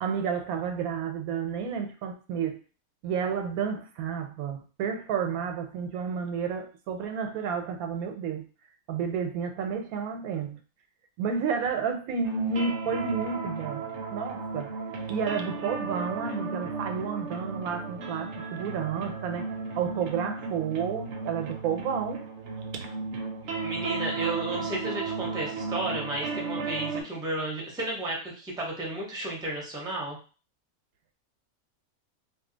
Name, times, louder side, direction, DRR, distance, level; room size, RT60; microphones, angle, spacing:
voice 1, 0.0-2.6 3.0-8.5 8.9-10.6 11.2-14.7 15.1-19.5 19.8-22.3 22.7-22.8, right 6 dB, 90° right, 5 dB, 1.1 m, -31 dB
sound 1, 12.2-27.0, right 4 dB, 65° right, 0.8 m, -35 dB
voice 2, 23.6-30.2, right 1 dB, 5° right, -3 dB, 0.5 m, -33 dB
2.6 x 2.3 x 3.8 m, 0.37 s
omnidirectional pair, 1.5 m